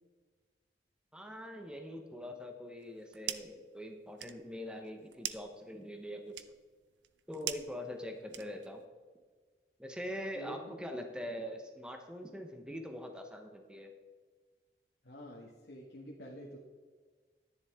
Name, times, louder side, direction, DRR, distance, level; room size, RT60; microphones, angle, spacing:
voice 1, 1.1-6.4 7.3-8.8 9.8-13.9, equal, 5° right, 4 dB, 0.8 m, -43 dB
sound 1, 2.8-3.6 4.0-8.9, right 12 dB, 90° right, 0.5 m, -44 dB
voice 2, 15.0-16.6, equal, 70° left, -2 dB, 1.3 m, -47 dB
10.5 x 10.5 x 3.5 m, 1.5 s
head